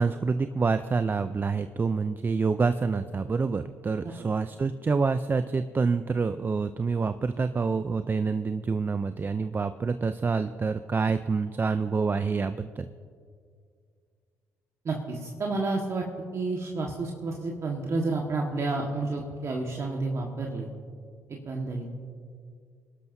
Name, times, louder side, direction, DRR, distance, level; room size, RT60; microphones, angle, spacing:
voice 1, 0.0-12.8, right 4 dB, 30° right, 11 dB, 0.5 m, -27 dB
voice 2, 14.8-16.0 16.3-20.7 21.3-21.9, right 3 dB, 45° right, 0 dB, 1.6 m, -30 dB
25.0 x 12.0 x 2.7 m, 2.2 s
supercardioid pair, 60°, 7 cm